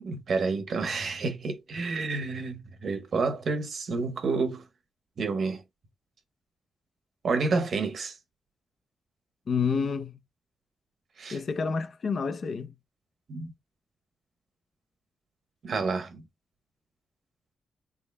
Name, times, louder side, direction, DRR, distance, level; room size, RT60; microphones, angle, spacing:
voice 1, 0.0-4.6 5.2-5.6 7.2-8.1 11.2-11.4 13.3-13.5 15.6-16.2, right 4 dB, 60° right, 1.0 m, -29 dB
voice 2, 9.5-10.2 11.3-12.7, left 5 dB, 55° left, 0.6 m, -29 dB
3.7 x 3.6 x 2.2 m
cardioid pair, 95°, 0 cm